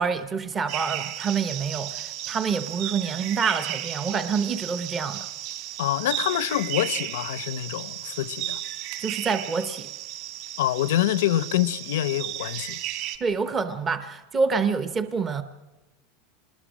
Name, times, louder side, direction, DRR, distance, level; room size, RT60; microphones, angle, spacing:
voice 1, 0.0-5.3 9.0-9.9 13.2-15.4, right 5 dB, 15° right, 0.7 m, -27 dB
sound 1, 0.7-13.2, right 13 dB, 50° right, 2.5 m, -34 dB
voice 2, 5.8-8.6 10.6-12.8, left 13 dB, 80° left, 0.7 m, -26 dB
26.0 x 20.5 x 6.2 m
supercardioid pair, 170°, 0 cm